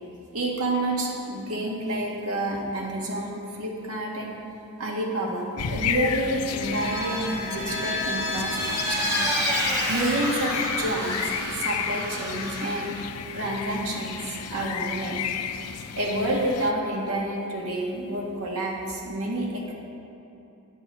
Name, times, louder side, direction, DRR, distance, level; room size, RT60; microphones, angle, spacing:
voice 1, 0.3-4.3 4.8-9.0 9.9-11.2 11.5-13.0 13.3-15.3 15.9-19.7, right 1 dB, 75° right, -2 dB, 1.7 m, -29 dB
sound 1, 5.6-16.7, left 7 dB, 85° left, 0.5 m, -32 dB
Vehicle, 6.6-12.9, equal, 15° right, 2.3 m, -29 dB
10.5 x 6.2 x 5.4 m, 2.9 s
head